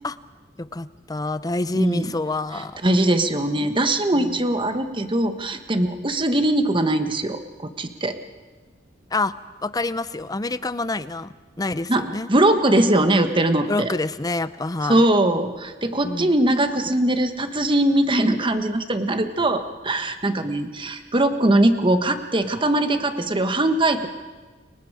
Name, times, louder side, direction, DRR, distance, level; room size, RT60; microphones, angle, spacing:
voice 1, 0.6-2.8 4.1-4.4 9.1-9.3 9.6-12.3 13.7-15.0 16.0-16.3, left 2 dB, 20° left, 15 dB, 0.7 m, -27 dB
voice 2, 1.7-2.1 2.8-8.2 11.9-13.9 14.9-24.1, right 1 dB, 30° right, 8 dB, 1.5 m, -21 dB
30.0 x 23.5 x 5.0 m, 1.3 s
head